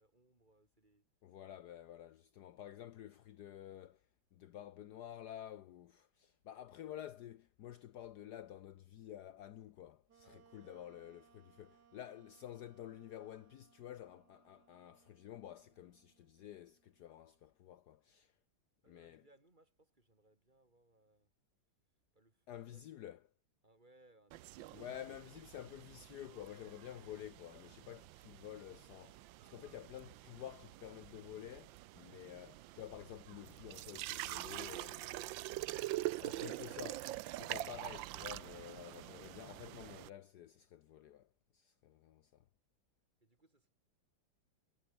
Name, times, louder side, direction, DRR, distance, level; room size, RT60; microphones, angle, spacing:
voice 1, 0.0-1.1 2.5-2.8 10.2-11.0 18.8-21.3 22.1-22.9 23.6-25.1 43.2-43.7, right 2 dB, 25° right, 3.0 m, -70 dB
voice 2, 1.2-4.1 4.3-18.3 18.9-19.2 22.5-23.2 24.7-35.2 36.2-42.4, left 11 dB, 65° left, 1.1 m, -51 dB
Wind instrument woodwind instrument, 10.1-17.5, right 8 dB, 60° right, 1.8 m, -69 dB
sound 1, 24.3-40.1, right 16 dB, 80° right, 1.3 m, -45 dB
omnidirectional pair, 2.1 m